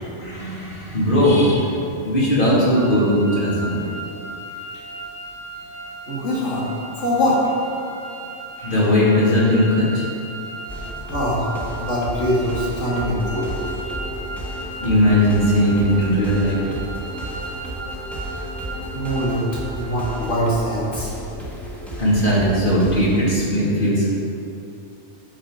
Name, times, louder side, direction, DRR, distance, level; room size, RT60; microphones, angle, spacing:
voice 1, 0.2-3.8 8.6-10.0 14.8-16.6 22.0-24.1, equal, 45° left, -7 dB, 2.7 m, -18 dB
sound 1, 2.7-20.4, right 2 dB, 85° right, 1.7 m, -36 dB
voice 2, 6.1-6.6 7.0-7.4 11.1-11.5 11.8-13.7 18.9-19.4 19.7-21.1, equal, 85° left, -7 dB, 2.3 m, -23 dB
sound 2, 10.7-23.3, equal, ahead, 1.3 m, -33 dB
8.7 x 7.8 x 5.0 m, 2.7 s
omnidirectional pair, 1.2 m